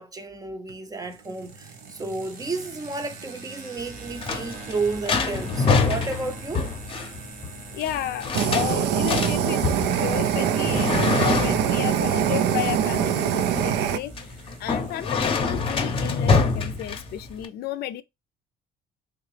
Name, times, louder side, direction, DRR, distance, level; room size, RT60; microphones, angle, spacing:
voice 1, 0.0-6.7, right 3 dB, 20° right, 0.6 m, -32 dB
sound 1, 0.7-17.4, right 5 dB, 65° right, 1.2 m, -44 dB
sound 2, 3.8-17.5, left 4 dB, 35° left, 0.7 m, -26 dB
voice 2, 7.7-9.6 10.0-14.1 14.6-18.0, left 13 dB, 70° left, 0.5 m, -32 dB
Fire, 8.3-14.0, right 9 dB, 80° right, 0.5 m, -23 dB
3.7 x 2.8 x 3.2 m
cardioid pair, 110°, 17 cm